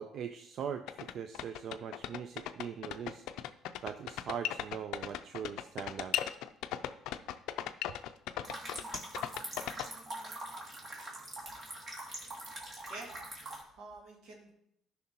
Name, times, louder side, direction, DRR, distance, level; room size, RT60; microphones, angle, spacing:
voice 1, 0.0-3.2 3.8-6.2, right 8 dB, 60° right, 8 dB, 0.4 m, -41 dB
sound 1, 0.6-9.9, left 12 dB, 80° left, 0.4 m, -37 dB
sound 2, 8.4-13.6, right 1 dB, 40° right, 2.3 m, -43 dB
voice 2, 12.4-13.1 13.5-14.5, right 2 dB, 85° right, 0 dB, 2.0 m, -50 dB
13.0 x 5.7 x 2.9 m, 0.75 s
cardioid pair, 100°, 0 cm